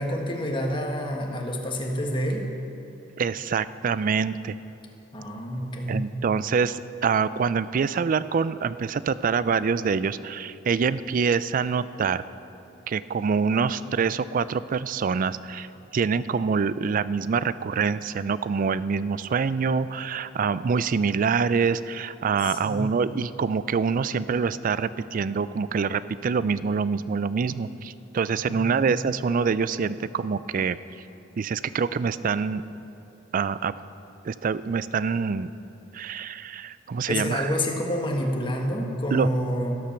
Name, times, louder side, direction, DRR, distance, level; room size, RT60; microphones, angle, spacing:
voice 1, 0.0-2.5 5.1-6.0 22.5-22.8 28.5-28.9 37.1-39.8, equal, 25° left, 1 dB, 1.4 m, -28 dB
voice 2, 3.2-4.6 5.9-12.2 12.9-15.7 15.9-30.8 31.4-32.6 33.3-33.7 34.2-35.5 35.9-37.5 39.1-39.3, right 5 dB, 45° right, 16 dB, 0.3 m, -25 dB
13.0 x 12.0 x 5.8 m, 2.9 s
head